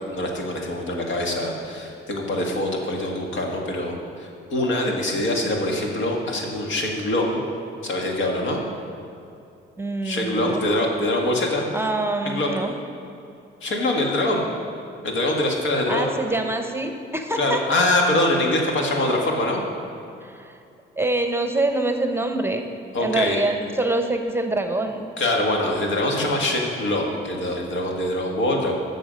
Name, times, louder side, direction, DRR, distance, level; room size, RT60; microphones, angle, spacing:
voice 1, 0.1-7.4 7.8-8.6 10.0-11.7 12.3-12.5 13.6-14.4 15.0-16.1 17.4-19.7 22.9-23.4 25.2-28.7, left 1 dB, 80° left, 0 dB, 1.7 m, -24 dB
voice 2, 9.8-10.6 11.7-12.8 15.9-17.8 20.2-20.6 21.0-22.7 23.0-25.1, right 2 dB, 10° right, 5 dB, 0.8 m, -25 dB
12.5 x 6.4 x 5.2 m, 2.6 s
cardioid pair, 90°, 20 cm